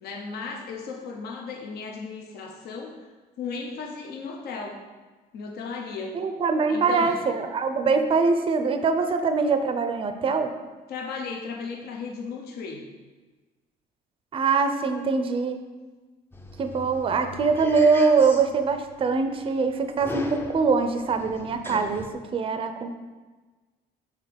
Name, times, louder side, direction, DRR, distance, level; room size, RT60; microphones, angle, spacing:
voice 1, 0.0-3.1 3.4-4.8 5.3-6.2 6.7-7.2 10.9-12.9, left 4 dB, 70° left, 1 dB, 0.9 m, -35 dB
voice 2, 6.1-10.5 14.3-15.6 16.6-22.9, right 4 dB, 30° right, 7 dB, 0.5 m, -23 dB
sound 1, 16.3-22.1, left 1 dB, 15° left, 0.6 m, -39 dB
6.5 x 3.7 x 5.1 m, 1.3 s
cardioid pair, 110°, 17 cm